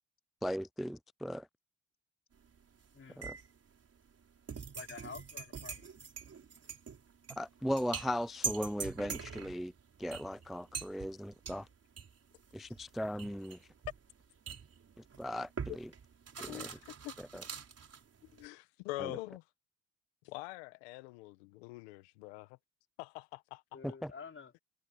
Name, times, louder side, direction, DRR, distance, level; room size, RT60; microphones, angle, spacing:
voice 1, 0.4-1.5 3.2-3.4 7.4-9.7 10.0-11.7 12.5-13.6 15.2-15.5 15.8-15.9 16.4-16.7 17.3-17.4 19.0-19.1 23.8-24.1, equal, ahead, 0.3 m, -37 dB
sound 1, 2.3-2.9 3.2-18.5, right 6 dB, 50° right, 5.0 m, -44 dB
voice 2, 2.9-3.3 4.7-5.9 23.7-24.5, left 5 dB, 40° left, 3.7 m, -49 dB
voice 3, 16.5-17.1 18.3-19.5 20.2-22.6 23.0-23.8, left 20 dB, 90° left, 1.5 m, -44 dB
hypercardioid pair, 45°, 31 cm